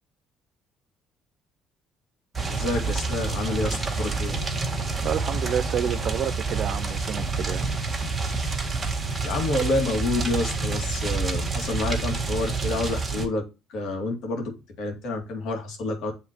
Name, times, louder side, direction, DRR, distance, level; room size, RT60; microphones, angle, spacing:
sound 1, 2.3-13.3, right 4 dB, 15° right, 1.7 m, -28 dB
voice 1, 2.5-4.4 9.2-13.4 13.7-14.5 14.8-16.1, left 2 dB, 70° left, 2.3 m, -28 dB
voice 2, 5.0-7.7, right 8 dB, 55° right, 0.5 m, -29 dB
9.2 x 3.6 x 3.1 m
cardioid pair, 90°, 0 cm